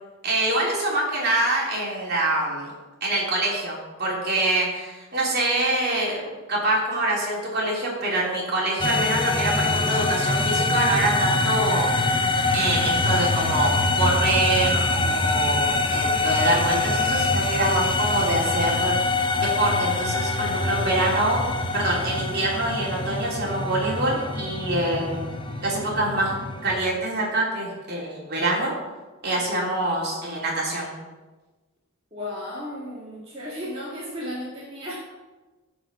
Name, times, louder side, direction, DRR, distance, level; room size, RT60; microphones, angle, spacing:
voice 1, 0.2-2.7 3.0-11.9 12.5-18.9 19.4-21.4 21.7-25.3 25.6-26.3 26.6-28.8 29.2-30.9, right 1 dB, 45° right, -3 dB, 3.2 m, -25 dB
sound 1, 8.8-26.8, left 2 dB, 25° left, 0.7 m, -24 dB
voice 2, 32.1-34.9, left 1 dB, 25° right, -7 dB, 2.0 m, -34 dB
14.5 x 5.0 x 6.1 m, 1.2 s
head